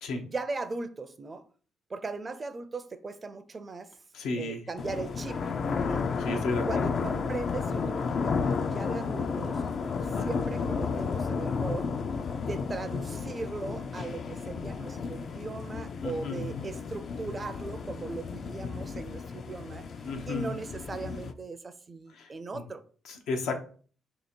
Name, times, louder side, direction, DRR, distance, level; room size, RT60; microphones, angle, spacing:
voice 1, 0.2-1.4 1.9-3.9 4.4-5.4 5.8-6.1 6.7-9.6 10.0-11.9 12.4-19.9 20.3-22.8, right 3 dB, 30° right, 0.4 m, -38 dB
voice 2, 4.1-4.6 5.9-6.9 10.1-10.4 16.0-16.7 20.0-20.6 22.1-22.6 23.1-23.6, left 3 dB, 85° left, 0.7 m, -34 dB
sound 1, 4.8-21.3, left 5 dB, 55° left, 0.3 m, -32 dB
2.8 x 2.8 x 4.2 m
cardioid pair, 90°, 0 cm